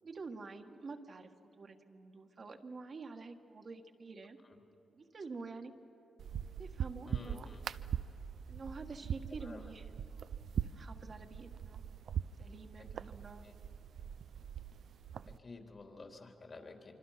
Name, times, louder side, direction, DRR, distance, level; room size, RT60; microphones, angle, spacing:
voice 1, 0.0-1.3 1.6-4.4 4.9-5.7 6.6-7.5 8.5-11.8 12.4-13.4, right 4 dB, 55° right, 4 dB, 1.6 m, -48 dB
sound 1, 6.2-15.4, right 8 dB, 75° right, 0.5 m, -42 dB
voice 2, 7.1-7.6 9.3-9.6 13.4-13.5 15.2-16.9, left 3 dB, 50° left, 2 dB, 3.5 m, -51 dB
26.0 x 25.0 x 5.8 m, 2.8 s
supercardioid pair, 50°, 0 cm